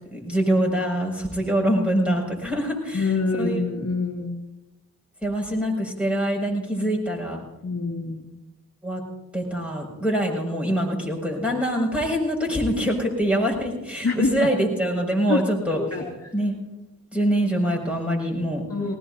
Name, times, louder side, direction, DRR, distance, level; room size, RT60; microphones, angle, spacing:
voice 1, 0.1-3.6 5.2-7.4 8.8-9.0 9.3-15.8 16.3-16.6 17.1-18.6, equal, 5° right, -1 dB, 6.1 m, -24 dB
voice 2, 2.9-4.3 7.6-8.3 14.0-14.5 15.3-15.4 15.9-16.3 18.7-19.0, left 3 dB, 40° left, -2 dB, 2.1 m, -25 dB
19.0 x 19.0 x 2.7 m, 0.99 s
cardioid pair, 50°, 36 cm